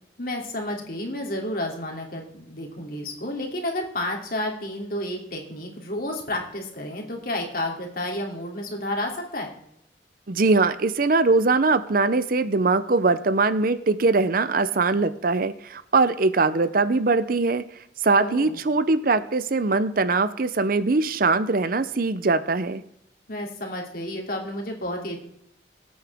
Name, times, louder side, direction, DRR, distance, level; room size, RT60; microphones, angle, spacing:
voice 1, 0.2-9.5 18.2-18.6 23.3-25.2, left 1 dB, 50° left, 1 dB, 2.8 m, -31 dB
voice 2, 10.3-17.6 18.0-22.8, right 3 dB, 50° right, 14 dB, 0.6 m, -21 dB
19.5 x 8.6 x 3.5 m, 0.75 s
head